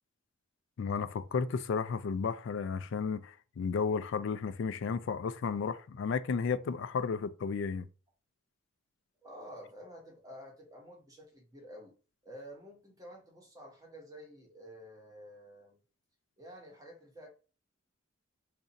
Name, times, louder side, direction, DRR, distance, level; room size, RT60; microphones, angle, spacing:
voice 1, 0.8-7.9, left 5 dB, 60° left, 0.3 m, -33 dB
voice 2, 9.2-11.9 12.2-15.8 16.4-17.3, equal, 15° right, 1.0 m, -50 dB
2.7 x 2.5 x 3.9 m
head